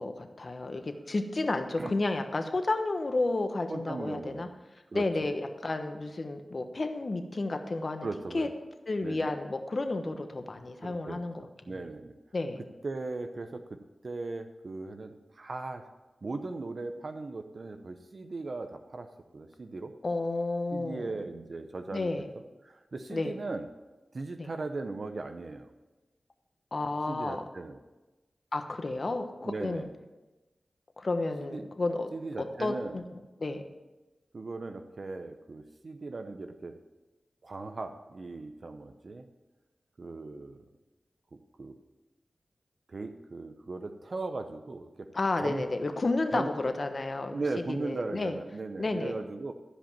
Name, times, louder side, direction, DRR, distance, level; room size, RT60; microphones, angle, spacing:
voice 1, 0.0-4.5 4.9-8.1 8.3-8.5 8.9-11.7 12.3-12.6 20.0-21.1 21.9-22.3 23.1-23.4 24.4-24.5 26.7-27.4 28.5-29.9 31.0-32.1 32.4-33.6 45.1-47.4 47.7-48.3 48.8-49.1, left 2 dB, 55° left, 6 dB, 1.1 m, -31 dB
voice 2, 3.7-4.5 4.9-5.0 8.0-8.5 9.0-9.3 10.8-12.1 12.8-15.9 16.2-19.9 20.7-22.1 22.6-23.7 24.1-25.7 27.1-27.8 29.4-29.9 31.5-31.6 32.1-33.0 34.3-36.8 37.4-39.2 40.0-40.6 41.6-41.8 42.9-45.1 45.4-45.6 46.3-46.5 47.3-49.5, right 3 dB, 60° right, 7 dB, 0.8 m, -38 dB
13.5 x 5.2 x 7.3 m, 1.1 s
cardioid pair, 50°, 0 cm